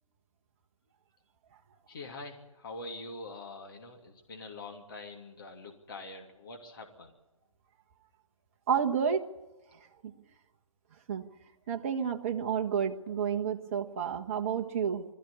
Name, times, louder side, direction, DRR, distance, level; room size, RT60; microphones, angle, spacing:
voice 1, 1.9-7.1, left 2 dB, 40° left, 2 dB, 2.9 m, -44 dB
voice 2, 8.7-9.3 10.0-10.1 11.1-11.2 11.7-15.0, right 7 dB, 25° right, 2 dB, 1.4 m, -30 dB
22.0 x 14.5 x 8.6 m, 1.1 s
figure-of-eight pair, 150°, 17 cm